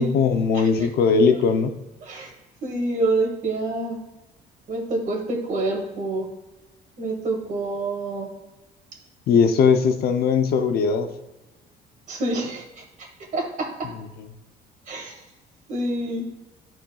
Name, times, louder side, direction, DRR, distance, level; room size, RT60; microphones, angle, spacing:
voice 1, 0.0-1.7 9.3-11.1, left 5 dB, 65° left, 7 dB, 0.7 m, -19 dB
voice 2, 2.6-4.0 4.7-6.3 7.0-8.3 12.1-12.8 13.3-13.7 14.9-15.2 15.7-16.3, right 2 dB, 50° right, 1 dB, 1.9 m, -27 dB
11.5 x 4.4 x 2.3 m, 1.1 s
cardioid pair, 110°, 17 cm